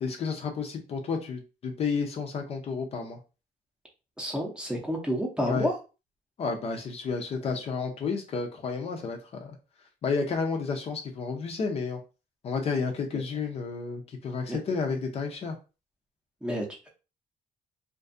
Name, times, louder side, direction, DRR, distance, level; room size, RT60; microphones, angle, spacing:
voice 1, 0.0-3.2 5.4-5.7 6.4-9.6 10.0-12.0 12.4-15.6, left 5 dB, 40° left, 3 dB, 0.5 m, -31 dB
voice 2, 4.2-5.7 14.5-14.6 16.4-16.9, equal, 5° right, -1 dB, 0.6 m, -30 dB
2.5 x 2.3 x 2.5 m, 0.31 s
cardioid pair, 150°, 15 cm